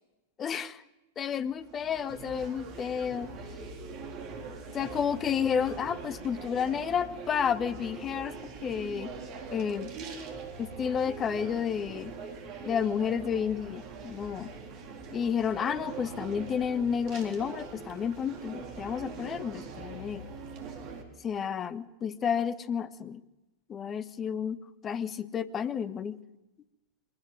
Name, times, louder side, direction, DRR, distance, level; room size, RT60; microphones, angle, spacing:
voice 1, 0.4-0.8 1.2-3.3 4.7-9.1 9.5-9.9 10.6-12.1 12.6-14.5 15.1-20.2 21.2-23.2 23.7-24.6 24.8-26.2, left 7 dB, 25° left, 14 dB, 1.3 m, -31 dB
sound 1, 1.3-21.0, right 4 dB, 35° right, 4.2 m, -42 dB
24.0 x 18.0 x 9.5 m, 1.0 s
figure-of-eight pair, 95°, 0 cm